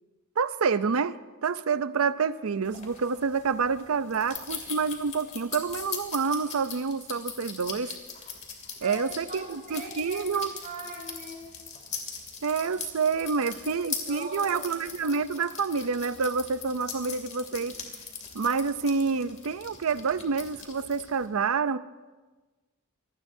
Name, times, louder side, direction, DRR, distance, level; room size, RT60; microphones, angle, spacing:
voice 1, 0.4-8.0 8.8-10.5 12.4-17.8 18.3-21.8, right 5 dB, 80° right, 14 dB, 0.6 m, -28 dB
sound 1, 2.6-21.3, left 6 dB, 35° left, 2.7 m, -41 dB
voice 2, 9.3-11.6 13.6-15.0, right 2 dB, 45° right, -1 dB, 6.0 m, -41 dB
25.5 x 20.0 x 2.7 m, 1.3 s
head